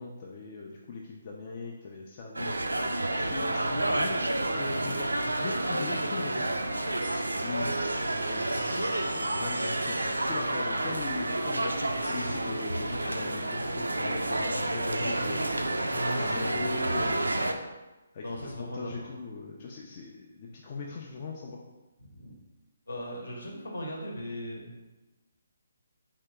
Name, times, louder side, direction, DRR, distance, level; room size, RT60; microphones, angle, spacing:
voice 1, 0.0-2.6 3.1-6.5 7.4-7.8 8.1-15.5 16.2-17.3 18.1-21.6, left 4 dB, 35° left, -2 dB, 0.4 m, -40 dB
sound 1, 2.4-17.5, right 1 dB, 75° right, 0.3 m, -30 dB
sound 2, 7.0-7.6 8.5-9.0 9.8-10.4 12.0-12.4, equal, 90° left, 0.5 m, -45 dB
voice 2, 15.9-16.7 18.2-19.0 22.1-22.4 22.9-24.9, left 1 dB, 65° left, -1 dB, 0.9 m, -37 dB
3.5 x 2.8 x 3.3 m, 1.1 s
figure-of-eight pair, 140°, 0 cm